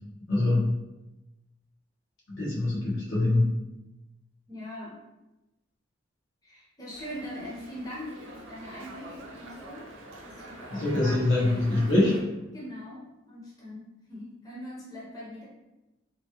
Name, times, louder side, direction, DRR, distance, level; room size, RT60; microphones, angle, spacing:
voice 1, 0.3-0.7 2.3-3.6 10.7-12.2, left 2 dB, 80° left, -7 dB, 1.0 m, -24 dB
voice 2, 4.5-5.0 6.4-9.9 10.2-10.9 12.5-15.5, equal, 20° left, -6 dB, 0.7 m, -41 dB
Dog, 6.9-12.2, right 2 dB, 90° right, 0.5 m, -45 dB
3.0 x 2.2 x 2.8 m, 1.0 s
head